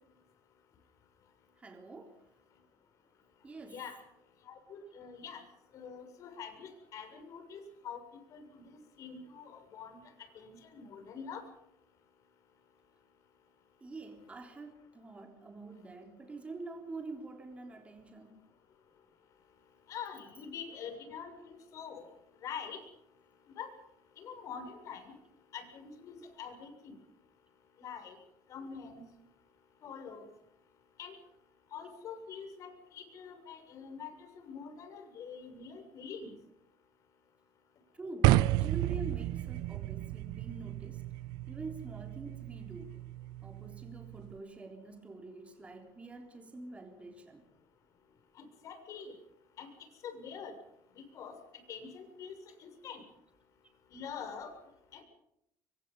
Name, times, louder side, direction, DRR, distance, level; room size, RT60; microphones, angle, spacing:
voice 1, 1.6-2.2 3.4-3.9 13.8-18.4 37.9-41.1 41.5-43.1 43.4-47.5, right 3 dB, 20° right, 4 dB, 3.7 m, -46 dB
voice 2, 3.7-4.0 4.4-5.4 5.7-8.0 8.3-11.4 19.9-22.2 22.4-22.8 23.6-23.7 24.2-25.1 25.5-27.0 27.8-28.2 28.5-29.0 29.8-30.3 31.0-31.1 31.7-36.3 48.3-49.2 49.6-49.7 50.0-50.6 50.9-51.4 51.7-53.0 53.9-54.5 54.9-55.0, left 6 dB, 50° left, 6 dB, 6.9 m, -45 dB
sound 1, 38.2-44.4, right 16 dB, 80° right, 0.8 m, -32 dB
25.5 x 24.0 x 5.6 m, 0.78 s
cardioid pair, 135°, 7 cm